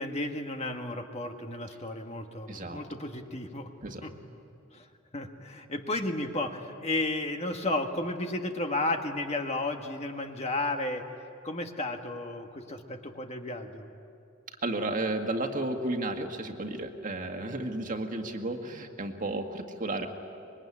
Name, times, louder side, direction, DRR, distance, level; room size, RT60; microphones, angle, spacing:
voice 1, 0.0-3.7 4.0-4.1 4.7-4.9 5.1-11.0 11.4-13.9, left 2 dB, 30° left, 4 dB, 1.5 m, -33 dB
voice 2, 2.5-2.8 3.8-4.1 14.6-20.1, right 2 dB, 40° right, 4 dB, 1.9 m, -33 dB
25.0 x 22.0 x 9.8 m, 2.5 s
head